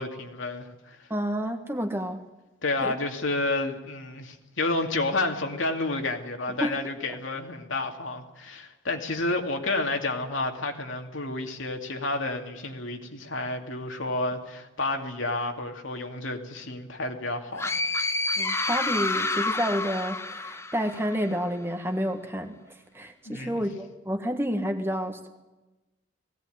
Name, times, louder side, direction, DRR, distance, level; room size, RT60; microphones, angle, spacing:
voice 1, 0.0-1.0 2.6-17.7 23.3-23.6, left 2 dB, 70° left, 3 dB, 2.6 m, -30 dB
voice 2, 1.1-2.2 2.8-2.9 6.6-6.8 7.1-7.2 18.4-25.3, equal, 10° right, 5 dB, 1.6 m, -30 dB
sound 1, 17.6-21.3, left 2 dB, 15° left, 0.7 m, -29 dB
19.5 x 17.5 x 9.3 m, 1.0 s
head